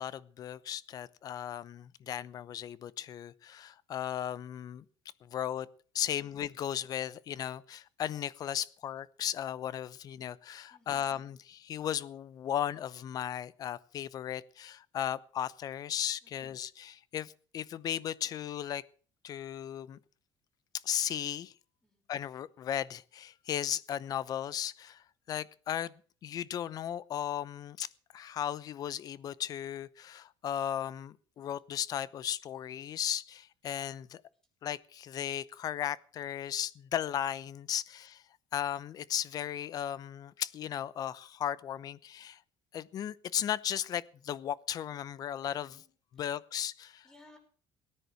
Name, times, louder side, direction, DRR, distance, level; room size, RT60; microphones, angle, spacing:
voice 1, 0.0-4.8 5.2-5.7 5.9-18.8 19.2-20.0 20.8-21.5 22.1-25.9 26.2-27.9 28.1-34.2 34.6-38.2 38.5-42.4 42.7-45.8 46.1-47.1, left 10 dB, 40° left, 20 dB, 0.8 m, -36 dB
voice 2, 6.0-6.3 10.7-11.1 16.2-16.5 21.8-22.0 45.6-45.9 46.2-46.3 47.0-47.4, left 2 dB, 10° left, 1 dB, 5.7 m, -61 dB
18.0 x 10.0 x 6.1 m, 0.42 s
cardioid pair, 155°, 10 cm